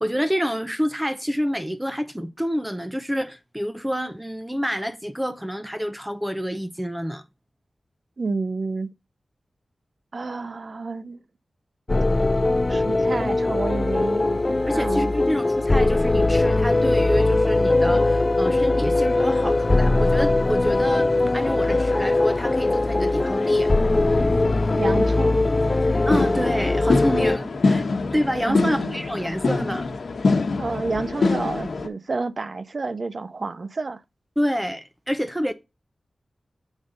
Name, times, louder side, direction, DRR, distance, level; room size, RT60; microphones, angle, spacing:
voice 1, 0.0-7.2 14.7-23.7 26.1-27.9 28.1-29.9 34.4-35.5, equal, 5° right, 0.7 m, -27 dB
voice 2, 8.2-8.9 10.1-11.2 12.7-15.1 24.7-25.4 28.5-29.0 30.6-34.0, right 3 dB, 50° right, 0.7 m, -30 dB
sound 1, 11.9-27.4, left 2 dB, 30° left, 0.3 m, -21 dB
sound 2, 18.9-31.9, left 3 dB, 70° left, 1.1 m, -27 dB
7.2 x 5.0 x 3.9 m
wide cardioid pair, 100°, 0 cm